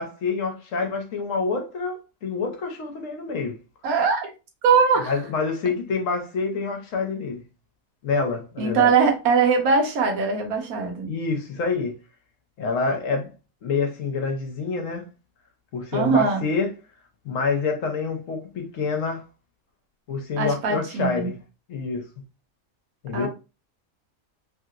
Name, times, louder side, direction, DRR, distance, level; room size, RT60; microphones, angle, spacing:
voice 1, 0.0-3.6 5.1-7.4 8.0-8.9 11.1-11.9 12.6-13.3 13.6-15.1 15.7-16.7 17.2-19.2 20.1-21.3 21.7-22.1 23.0-23.3, left 4 dB, 65° left, 1.1 m, -27 dB
voice 2, 3.8-4.3 4.6-5.1 8.6-11.1 15.9-16.5 20.4-21.3 23.1-23.3, right 5 dB, 85° right, 1.3 m, -21 dB
3.2 x 2.8 x 2.4 m
omnidirectional pair, 1.5 m